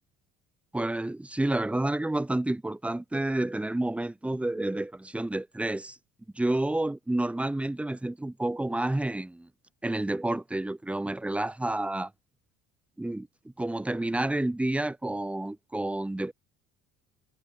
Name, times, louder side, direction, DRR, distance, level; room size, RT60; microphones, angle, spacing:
voice 1, 0.7-6.0 6.3-9.5 9.8-12.1 13.0-13.3 13.6-16.3, right 1 dB, 5° right, 0.5 m, -29 dB
figure-of-eight pair, 55°, 44 cm